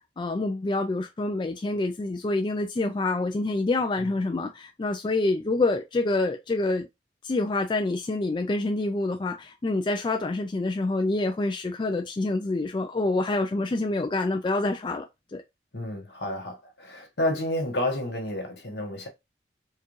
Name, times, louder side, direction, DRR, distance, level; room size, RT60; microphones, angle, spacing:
voice 1, 0.2-6.9 7.2-15.1 15.3-15.4, left 2 dB, 25° left, 0.3 m, -27 dB
voice 2, 15.7-19.1, left 1 dB, 70° left, 1.3 m, -30 dB
4.5 x 2.4 x 3.1 m
head